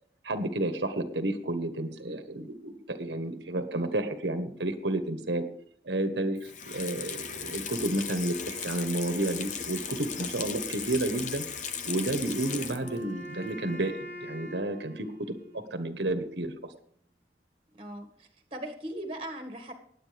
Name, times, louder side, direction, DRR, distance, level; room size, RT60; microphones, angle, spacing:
voice 1, 0.2-5.4 5.8-11.4 11.8-13.9 14.2-16.5, right 1 dB, 80° right, 8 dB, 1.3 m, -31 dB
voice 2, 3.7-4.0 17.7-19.7, right 1 dB, 30° right, 4 dB, 1.8 m, -40 dB
Water tap faucet / Sink (filling or washing), 6.4-13.1 13.5-13.6, left 7 dB, 45° left, 0.7 m, -37 dB
Wind instrument woodwind instrument, 11.9-15.9, equal, 10° right, 3.2 m, -45 dB
Bass guitar, 12.4-16.8, right 2 dB, 10° left, 4.9 m, -53 dB
20.5 x 8.7 x 3.5 m, 0.65 s
head